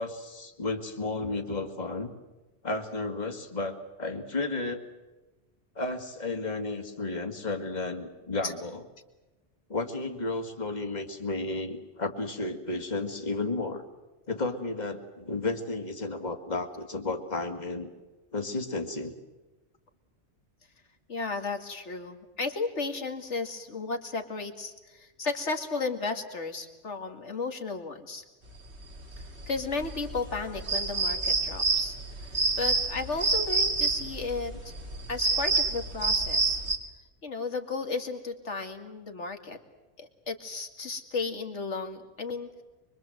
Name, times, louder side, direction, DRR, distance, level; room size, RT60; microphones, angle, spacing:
voice 1, 0.0-2.1 2.6-4.8 5.8-8.8 9.7-13.8 14.3-17.9 18.3-19.1, left 3 dB, 40° left, 5 dB, 2.1 m, -33 dB
voice 2, 21.1-28.2 29.2-34.8 35.1-36.6 37.2-39.6 40.0-42.6, left 3 dB, 80° left, 6 dB, 2.5 m, -34 dB
sound 1, 28.7-36.8, right 3 dB, 70° right, 2.8 m, -28 dB
24.5 x 24.0 x 7.8 m, 1.1 s
omnidirectional pair, 1.2 m